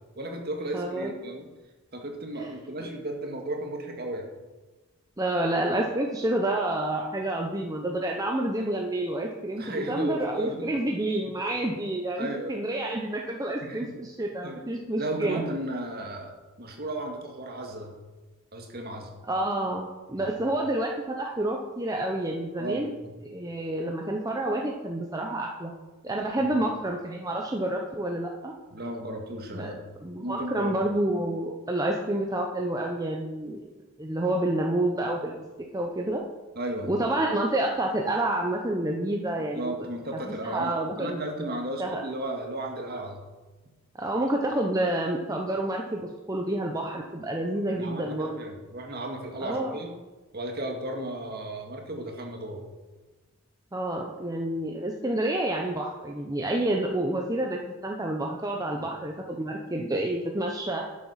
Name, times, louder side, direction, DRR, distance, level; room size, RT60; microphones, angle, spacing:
voice 1, 0.2-1.4 1.9-4.3 9.6-10.8 12.2-12.5 13.6-13.9 14.4-14.6 15.0-17.9 18.5-19.1 20.2-20.4 22.6-23.1 26.4-26.5 28.7-29.9 30.2-30.8 36.6-37.0 39.5-43.2 47.8-49.9 50.3-52.6 58.7-58.8, right 1 dB, 45° right, 2 dB, 1.9 m, -34 dB
voice 2, 0.7-1.1 2.4-2.5 2.8-2.9 5.2-15.4 19.2-22.9 23.2-25.7 26.0-28.5 29.5-29.7 30.0-33.7 34.0-35.4 35.7-36.2 36.9-39.8 40.2-41.3 41.8-42.0 43.9-48.5 49.4-49.8 53.7-60.9, right 1 dB, 15° right, 0 dB, 0.8 m, -29 dB
12.0 x 7.4 x 5.7 m, 1.2 s
head